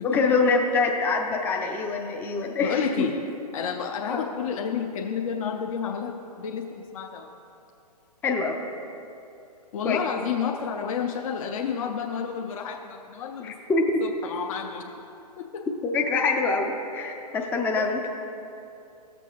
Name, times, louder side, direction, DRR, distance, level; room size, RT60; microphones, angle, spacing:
voice 1, 0.0-3.1 4.1-4.3 8.2-8.6 9.8-10.0 13.4-14.0 15.8-18.1, left 3 dB, 10° left, 1 dB, 0.4 m, -25 dB
voice 2, 2.6-3.2 3.5-7.4 9.7-13.6 14.0-14.9 15.4-15.7 17.8-18.1, left 7 dB, 55° left, 2 dB, 0.6 m, -30 dB
15.0 x 6.8 x 2.3 m, 2.7 s
figure-of-eight pair, 120°, 21 cm